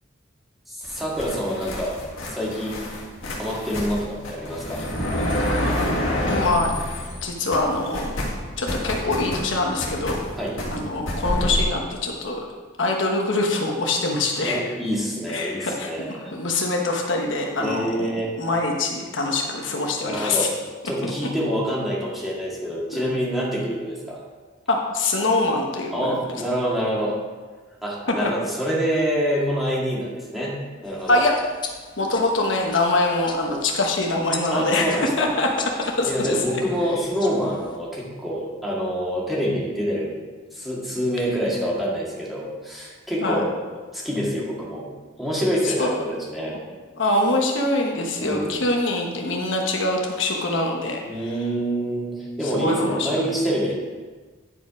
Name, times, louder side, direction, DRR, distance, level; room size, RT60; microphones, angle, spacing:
voice 1, 0.7-2.0 2.3-2.9 3.4-4.8 10.4-10.6 14.4-16.3 17.6-18.3 20.0-20.5 20.8-24.2 25.9-27.2 27.8-30.6 30.8-31.2 34.5-35.3 36.1-40.2 40.5-43.5 43.9-44.9 45.2-46.6 48.2-48.6 51.0-53.7, equal, ahead, -6 dB, 1.9 m, -26 dB
sound 1, 0.8-7.2 7.5-11.6, left 1 dB, 85° left, 1.8 m, -28 dB
voice 2, 6.3-6.7 7.2-8.1 8.6-10.3 10.7-12.4 12.8-14.6 15.3-18.1 18.4-20.5 21.0-21.1 22.9-23.1 24.7-26.2 28.1-28.3 31.1-31.3 32.0-35.5 35.8-36.4 43.2-43.4 45.6-45.9 47.0-51.0 52.5-53.1, left 2 dB, 70° left, 1 dB, 1.1 m, -24 dB
sound 2, 30.8-37.8, left 4 dB, 25° left, 0.8 m, -39 dB
9.9 x 5.0 x 4.9 m, 1.4 s
head